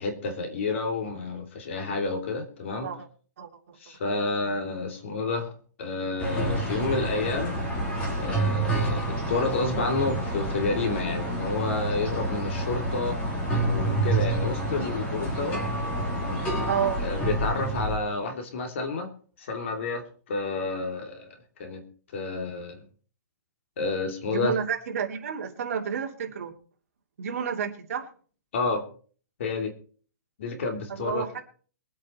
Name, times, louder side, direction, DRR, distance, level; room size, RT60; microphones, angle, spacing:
voice 1, 0.0-2.9 3.8-5.5 5.8-7.6 8.2-13.2 13.6-15.6 16.1-16.4 17.0-19.1 19.4-21.3 21.6-21.9 22.1-22.8 23.8-24.5 28.5-28.8 29.4-29.7 30.4-31.2, left 3 dB, 40° left, 5 dB, 2.8 m, -30 dB
voice 2, 3.4-3.8 16.7-17.0 24.3-26.5 27.2-28.1 30.9-31.4, right 7 dB, 50° right, 1 dB, 2.9 m, -30 dB
sound 1, 6.2-18.0, right 1 dB, 10° left, 3.0 m, -28 dB
22.5 x 8.6 x 4.4 m, 0.43 s
hypercardioid pair, 175°, 10 cm